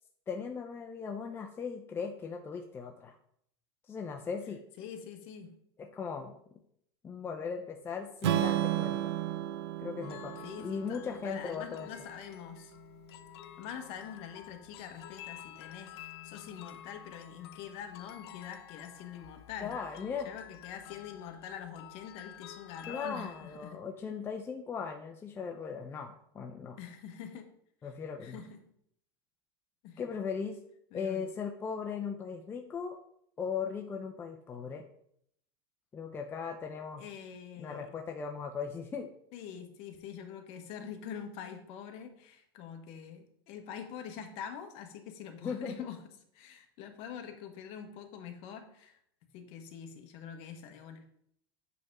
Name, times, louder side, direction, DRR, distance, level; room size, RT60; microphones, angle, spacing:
voice 1, 0.3-3.1 3.9-4.6 5.8-6.3 7.0-9.1 9.8-11.9 19.6-20.3 22.9-26.8 27.8-28.4 30.0-30.6 30.9-33.0 33.4-34.8 35.9-37.0 37.6-39.1 45.4-45.8, left 6 dB, 15° left, 3 dB, 0.6 m, -38 dB
voice 2, 4.8-5.6 10.4-12.8 13.6-19.8 20.2-23.8 26.8-27.5 27.8-27.9 28.2-28.7 29.8-30.1 30.9-31.3 37.0-37.9 39.3-46.0 46.3-49.0 49.3-51.0, left 8 dB, 50° left, 5 dB, 1.3 m, -45 dB
Strum, 8.2-12.4, right 13 dB, 85° right, 0.7 m, -33 dB
sound 1, 10.0-23.7, left 13 dB, 70° left, 0.6 m, -51 dB
8.4 x 3.6 x 5.3 m, 0.70 s
supercardioid pair, 140°, 13 cm